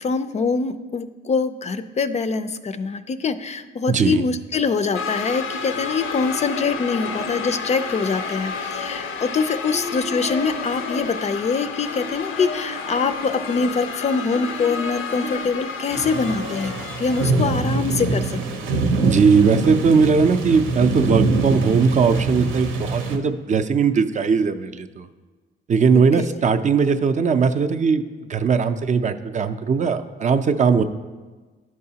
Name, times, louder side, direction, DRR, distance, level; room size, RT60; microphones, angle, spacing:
voice 1, 0.0-16.7 17.0-18.6 26.2-26.4, left 4 dB, 35° left, 11 dB, 0.4 m, -24 dB
voice 2, 3.9-4.2 19.0-25.1 25.7-28.0 28.3-30.8, right 5 dB, 40° right, 8 dB, 0.4 m, -19 dB
sound 1, 4.9-17.3, left 4 dB, 85° left, 0.6 m, -30 dB
sound 2, 15.9-23.2, right 3 dB, 90° right, 0.8 m, -24 dB
11.0 x 4.7 x 2.8 m, 1.3 s
cardioid pair, 90°, 20 cm